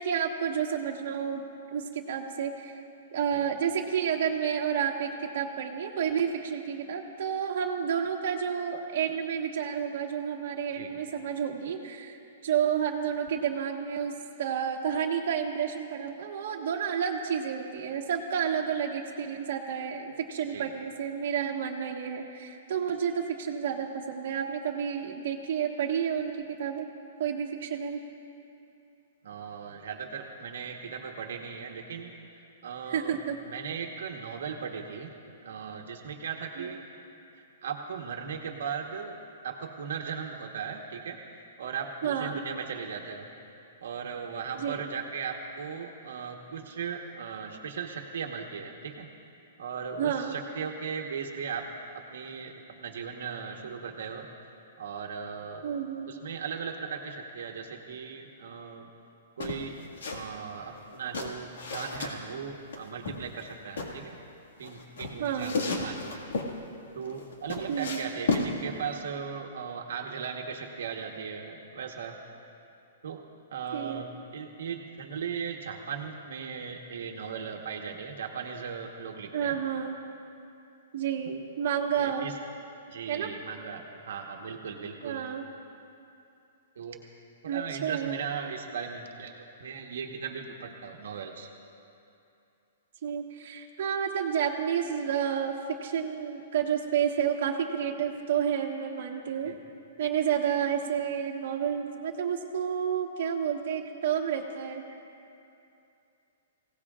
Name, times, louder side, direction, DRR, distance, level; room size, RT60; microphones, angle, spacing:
voice 1, 0.0-2.8 3.1-12.2 12.4-14.1 14.4-26.9 27.2-28.0 32.9-33.4 36.6-36.7 42.0-42.4 44.5-44.9 50.0-50.3 55.6-56.1 65.2-65.5 67.7-68.1 73.7-74.0 79.3-80.0 80.9-82.3 83.1-83.3 85.0-85.4 87.5-88.2 93.0-95.6 95.8-99.5 100.0-104.8, right 8 dB, 50° right, -1 dB, 1.4 m, -30 dB
voice 2, 29.2-32.2 32.6-33.1 33.5-35.1 35.4-36.8 37.3-39.1 39.4-41.2 41.6-43.3 43.8-49.1 49.6-51.7 51.9-54.3 54.8-55.6 56.1-58.9 59.4-59.8 60.1-64.2 64.6-66.3 66.9-72.2 73.0-73.2 73.5-79.6 81.9-82.3 82.9-85.3 86.8-87.0 87.4-89.3 89.6-91.5 99.4-99.6, right 6 dB, 70° right, 2 dB, 1.2 m, -37 dB
sound 1, 59.4-60.2 60.5-62.1 62.7-63.9 64.6-66.5 67.0-68.5, left 4 dB, 80° left, 1.9 m, -33 dB
26.0 x 17.0 x 2.5 m, 2.7 s
hypercardioid pair, 170°, 0 cm